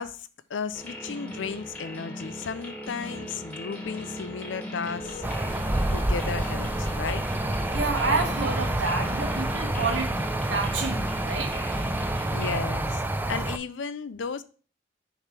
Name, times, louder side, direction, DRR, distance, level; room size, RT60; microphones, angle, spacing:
voice 1, 0.0-5.6 5.9-7.2 12.3-14.4, left 5 dB, 85° left, 0.5 m, -34 dB
sound 1, 0.7-12.6, left 1 dB, 10° left, 1.2 m, -38 dB
sound 2, 5.0-10.0, left 1 dB, 30° left, 1.1 m, -42 dB
sound 3, 5.2-13.6, right 1 dB, 10° right, 0.4 m, -28 dB
voice 2, 7.7-11.5, right 3 dB, 90° right, 1.4 m, -29 dB
6.5 x 3.1 x 5.9 m
head